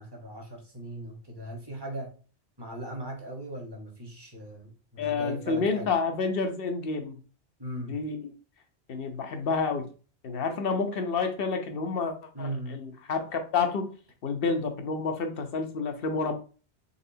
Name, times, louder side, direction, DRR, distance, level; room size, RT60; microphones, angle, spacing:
voice 1, 0.0-2.1 2.6-5.9 7.6-8.0 12.3-12.8, right 1 dB, 25° right, 1 dB, 1.2 m, -38 dB
voice 2, 5.0-7.2 7.8-8.3 8.9-9.8 10.2-13.9 14.2-16.3, left 4 dB, 60° left, 6 dB, 0.9 m, -29 dB
4.1 x 3.8 x 2.7 m, 0.37 s
omnidirectional pair, 1.1 m